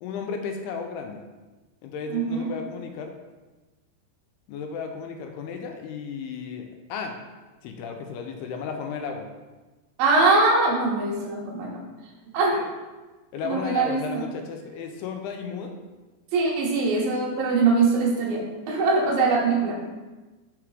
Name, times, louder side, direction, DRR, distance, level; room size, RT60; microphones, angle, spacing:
voice 1, 0.0-1.2 1.8-3.1 4.5-7.1 7.6-9.3 12.5-12.7 13.3-15.7, left 6 dB, 85° left, 4 dB, 2.6 m, -34 dB
voice 2, 2.1-2.5 10.0-11.8 12.3-12.6 13.4-14.0 16.3-18.4 18.7-19.8, right 3 dB, 70° right, -2 dB, 2.6 m, -22 dB
5.8 x 4.8 x 4.8 m, 1.2 s
omnidirectional pair, 4.7 m